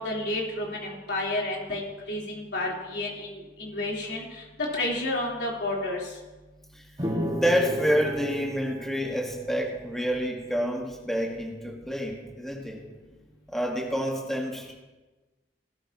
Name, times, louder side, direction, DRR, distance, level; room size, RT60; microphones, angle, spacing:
voice 1, 0.0-6.0, left 2 dB, 70° left, -4 dB, 3.6 m, -31 dB
sound 1, 7.0-10.6, equal, 25° right, 1.8 m, -33 dB
voice 2, 7.3-12.8 13.5-14.7, equal, ahead, -1 dB, 1.5 m, -28 dB
18.0 x 12.5 x 2.9 m, 1.2 s
head